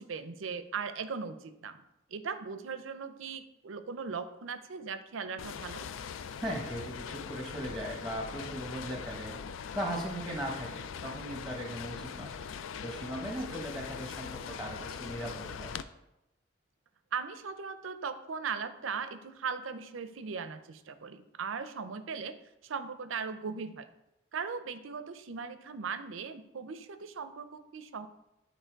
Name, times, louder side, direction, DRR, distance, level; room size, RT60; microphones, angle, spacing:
voice 1, 0.0-1.8 2.1-5.9 13.5-13.6 17.1-22.4 22.6-23.9 24.3-28.1, right 5 dB, 90° right, 11 dB, 0.6 m, -38 dB
Rain on a metal roof from a distance, 5.4-15.8, left 7 dB, 90° left, 0.4 m, -41 dB
voice 2, 6.4-9.4 9.7-12.3 12.8-15.8, equal, ahead, -1 dB, 1.0 m, -38 dB
9.1 x 4.2 x 4.6 m, 0.90 s
head